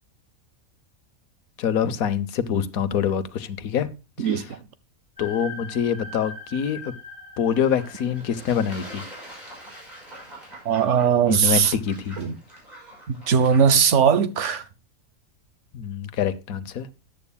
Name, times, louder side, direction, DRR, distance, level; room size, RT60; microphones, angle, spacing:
voice 1, 1.6-3.9 4.2-4.3 5.2-6.9 7.4-9.0 11.3-12.2 15.7-16.9, left 8 dB, 80° left, 1.3 m, -25 dB
voice 2, 4.2-4.6 10.6-11.8 12.2-12.4 13.1-14.6, right 7 dB, 60° right, 1.1 m, -20 dB
sound 1, 5.2-11.4, left 2 dB, 15° right, 5.3 m, -43 dB
Fowl / Bird / Water, 7.5-14.1, right 1 dB, 30° right, 6.1 m, -44 dB
14.0 x 9.9 x 2.2 m
omnidirectional pair, 1.5 m